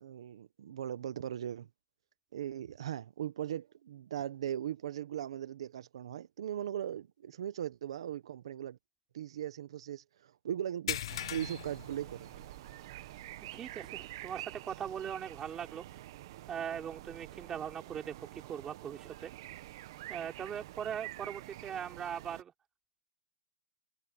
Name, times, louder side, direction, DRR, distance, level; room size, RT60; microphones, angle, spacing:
voice 1, 0.0-1.7 2.3-8.8 9.1-11.0 11.3-12.3, right 10 dB, 75° right, 1.1 m, -39 dB
sound 1, 10.9-12.8 13.1-13.3 13.8-13.9 15.5-15.6, left 11 dB, 70° left, 0.5 m, -40 dB
sound 2, 11.1-22.4, right 15 dB, 55° right, 1.3 m, -48 dB
voice 2, 13.5-15.8 16.5-19.3 20.1-22.5, right 8 dB, 15° right, 4.4 m, -40 dB
hypercardioid pair, 155°, 3 cm